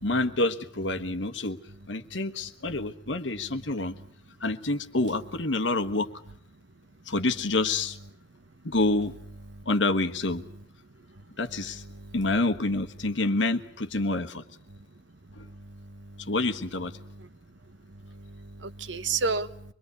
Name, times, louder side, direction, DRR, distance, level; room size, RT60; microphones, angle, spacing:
voice 1, 0.0-1.6 1.9-4.0 4.4-6.1 7.1-8.0 8.6-9.2 9.6-10.4 11.4-11.8 12.1-14.4 15.4-15.5 16.3-16.9, left 2 dB, 85° left, 7 dB, 1.4 m, -27 dB
voice 2, 15.4-16.3 17.0-17.3 17.9-19.7, right 4 dB, 80° right, 13 dB, 1.0 m, -34 dB
25.0 x 21.5 x 8.3 m, 0.63 s
head